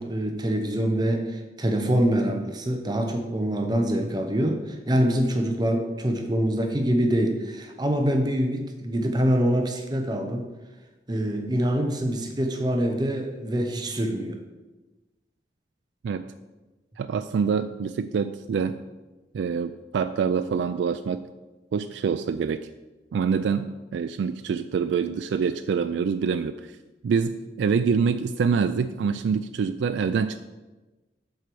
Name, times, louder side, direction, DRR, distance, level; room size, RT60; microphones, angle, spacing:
voice 1, 0.0-10.5 11.1-14.4, equal, 25° right, 4 dB, 0.7 m, -25 dB
voice 2, 17.0-18.8 19.3-21.2 21.7-22.7 23.1-26.6 27.0-30.4, right 6 dB, 85° right, 10 dB, 0.3 m, -25 dB
7.9 x 4.5 x 6.8 m, 1.2 s
head